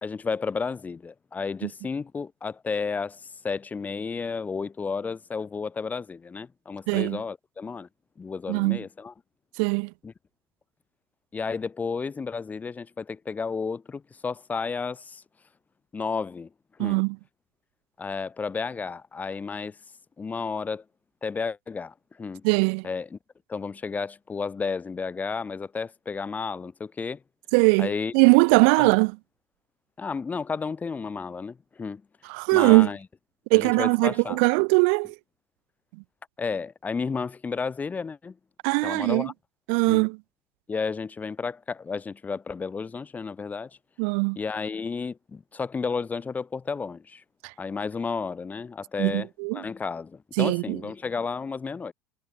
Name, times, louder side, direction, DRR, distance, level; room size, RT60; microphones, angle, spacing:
voice 1, 0.0-7.9 8.2-9.1 10.0-10.1 11.3-15.2 15.9-16.5 16.8-17.0 18.0-19.8 20.2-20.8 21.2-22.4 22.8-23.2 23.5-27.2 27.8-28.1 28.8-28.9 30.0-32.0 32.5-33.0 33.5-34.4 36.4-38.4 38.8-39.3 39.9-40.0 40.7-43.7 44.4-47.2 47.6-49.3 49.5-51.9, left 5 dB, 20° left, 1.9 m, -32 dB
voice 2, 6.9-7.2 8.5-8.8 9.6-9.9 16.8-17.2 22.4-22.9 27.5-29.2 32.2-32.9 33.5-35.1 38.6-39.3 39.7-40.2 44.0-44.4 47.4-47.5 49.0-49.6 50.4-50.8, right 40 dB or more, 65° right, 0.7 m, -21 dB
hypercardioid pair, 80°, 7 cm